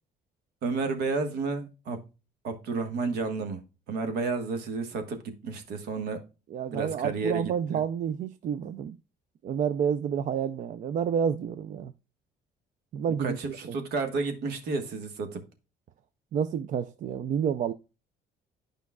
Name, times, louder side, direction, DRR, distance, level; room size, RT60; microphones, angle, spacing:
voice 1, 0.6-2.0 2.4-3.6 3.9-6.2 6.7-7.5 13.2-15.4, right 4 dB, 75° right, 1.4 m, -31 dB
voice 2, 6.5-9.0 9.4-11.9 12.9-13.6 16.3-17.7, right 8 dB, 50° right, 0.4 m, -29 dB
9.5 x 5.1 x 2.3 m
cardioid pair, 110°, 17 cm